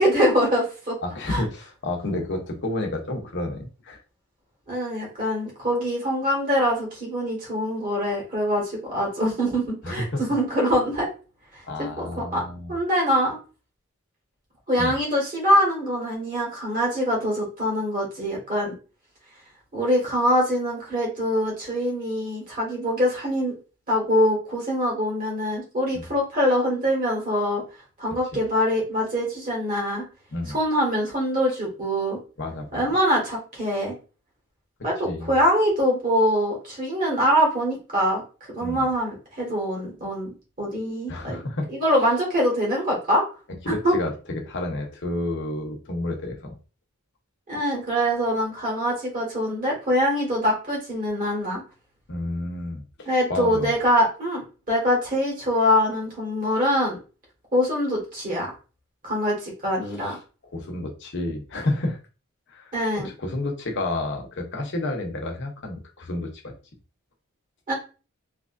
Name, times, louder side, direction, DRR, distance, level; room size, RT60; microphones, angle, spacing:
voice 1, 0.0-1.0 1.3-1.4 4.7-11.1 11.5-12.4 12.7-13.4 14.7-18.7 19.7-23.5 23.9-27.6 28.0-30.0 30.5-32.2 32.7-33.9 34.8-38.2 38.6-40.3 40.6-41.4 41.7-43.2 43.7-43.9 47.5-51.6 53.1-57.0 57.5-58.5 59.0-60.2 62.7-63.1 67.7-67.8, equal, 40° right, -2 dB, 1.7 m, -24 dB
voice 2, 1.0-4.0 9.8-10.2 11.7-12.7 14.8-14.9 25.9-26.1 30.3-30.6 32.4-32.8 35.0-35.4 38.6-38.9 41.1-41.7 43.5-46.5 52.1-53.7 60.0-60.2 60.5-62.0 62.5-66.5, left 2 dB, 55° left, 2 dB, 0.8 m, -30 dB
3.3 x 2.9 x 2.5 m, 0.34 s
head